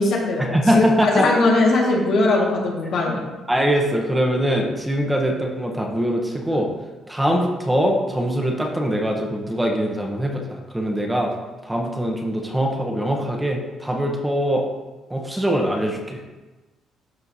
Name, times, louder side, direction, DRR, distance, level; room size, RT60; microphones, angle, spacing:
voice 1, 0.0-3.2, left 2 dB, 70° left, -2 dB, 1.8 m, -20 dB
voice 2, 0.5-1.3 3.1-3.2 3.5-6.7 7.1-11.3 11.6-14.6 15.1-16.2, equal, 10° right, 0 dB, 1.0 m, -22 dB
12.5 x 4.5 x 2.7 m, 1.2 s
cardioid pair, 100°, 0 cm